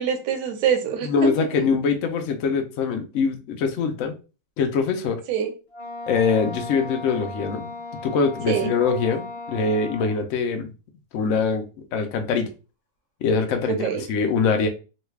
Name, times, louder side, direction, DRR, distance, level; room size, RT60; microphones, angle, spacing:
voice 1, 0.0-1.6 5.3-5.5 8.5-8.7 13.7-14.0, right 8 dB, 70° right, 5 dB, 1.1 m, -25 dB
voice 2, 1.0-4.1 4.6-5.2 6.1-7.7 8.0-10.7 11.1-11.6 11.9-12.5 13.2-14.7, left 5 dB, 80° left, 5 dB, 0.7 m, -23 dB
Wind instrument woodwind instrument, 5.7-10.2, left 2 dB, 25° left, 1.1 m, -36 dB
3.2 x 2.3 x 3.1 m, 0.32 s
omnidirectional pair, 2.1 m